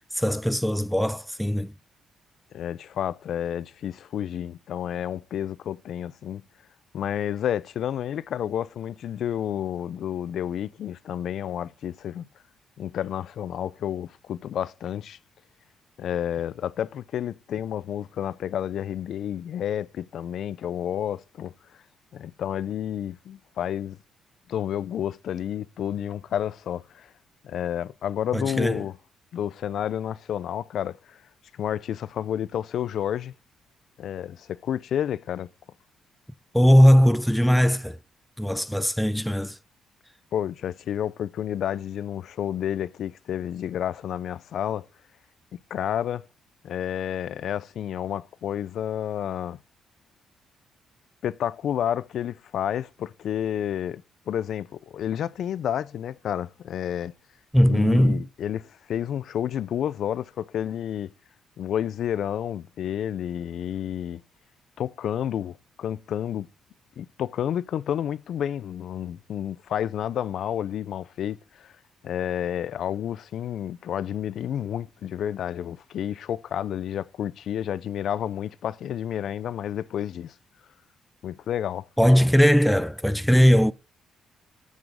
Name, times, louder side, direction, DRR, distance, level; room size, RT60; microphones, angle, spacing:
voice 1, 0.1-1.7 28.3-28.8 36.5-38.0 38.4-39.6 57.5-58.2 82.0-83.7, equal, ahead, 0.5 m, -19 dB
voice 2, 2.5-6.4 6.9-12.3 12.8-15.2 16.0-21.8 22.1-24.0 24.5-27.1 27.4-29.0 29.3-31.2 31.5-33.3 34.0-35.5 40.3-44.9 45.5-46.3 46.6-49.6 51.2-57.1 57.7-61.1 61.6-64.2 64.8-66.5 67.0-71.7 72.0-80.3 81.2-81.9, left 10 dB, 70° left, 0.4 m, -30 dB
7.3 x 6.1 x 5.1 m
cardioid pair, 90°, 0 cm